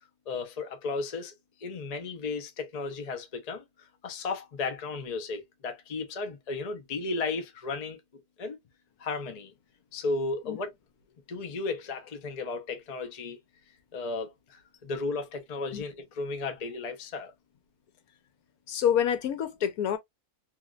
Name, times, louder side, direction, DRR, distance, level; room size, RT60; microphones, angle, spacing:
voice 1, 0.3-1.3 1.6-3.6 4.0-8.0 8.4-8.6 9.0-9.5 9.9-10.7 11.3-13.4 13.9-17.3, left 3 dB, 40° left, 0.5 m, -34 dB
voice 2, 18.7-20.0, left 9 dB, 80° left, 1.2 m, -27 dB
2.9 x 2.8 x 2.4 m
omnidirectional pair, 1.5 m